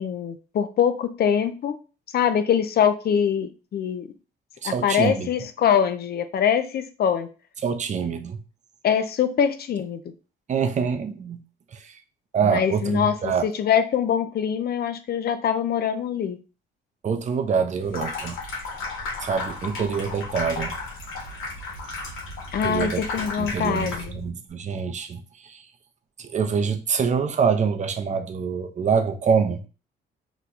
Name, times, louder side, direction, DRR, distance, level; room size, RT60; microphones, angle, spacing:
voice 1, 0.0-1.8 2.1-4.1 4.6-7.3 8.8-10.0 12.4-16.4 22.5-24.2, left 8 dB, 55° left, 9 dB, 0.5 m, -23 dB
voice 2, 4.6-5.3 7.6-8.4 10.5-11.4 11.7-12.0 12.3-13.5 17.0-18.4 19.2-20.8 22.6-23.0 23.4-25.7 26.2-29.7, right 6 dB, 35° right, 6 dB, 0.5 m, -25 dB
Water tap faucet / Sink (filling or washing), 17.8-24.3, left 3 dB, 90° left, 1.0 m, -33 dB
2.9 x 2.2 x 3.9 m, 0.35 s
cardioid pair, 90°, 20 cm